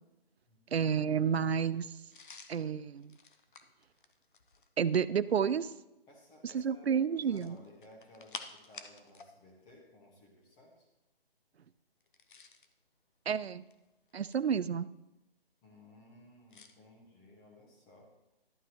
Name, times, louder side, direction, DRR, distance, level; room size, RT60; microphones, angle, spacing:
voice 1, 0.7-1.9 2.5-3.1 4.8-5.7 6.4-7.6 13.3-13.6 14.1-14.9, right 7 dB, 90° right, 16 dB, 0.5 m, -30 dB
sound 1, 2.1-4.8 7.2-9.3 9.6-9.8 12.0-12.7 13.5-14.6 16.5-16.8, left 5 dB, 55° left, 0.9 m, -51 dB
voice 2, 6.1-10.9 15.6-18.1, left 1 dB, 15° left, -1 dB, 1.5 m, -58 dB
11.5 x 8.2 x 3.1 m, 0.96 s
figure-of-eight pair, 150°, 30 cm